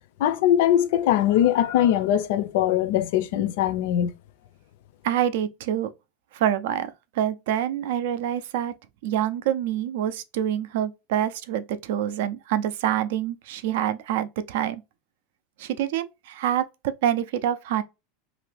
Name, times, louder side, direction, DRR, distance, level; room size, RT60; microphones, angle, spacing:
voice 1, 0.2-4.1, left 11 dB, 60° left, 0.4 m, -21 dB
voice 2, 5.0-5.9 6.3-8.7 9.0-14.8 15.6-17.8, right 10 dB, 70° right, 0.4 m, -26 dB
2.8 x 2.6 x 3.2 m
supercardioid pair, 170°, 0 cm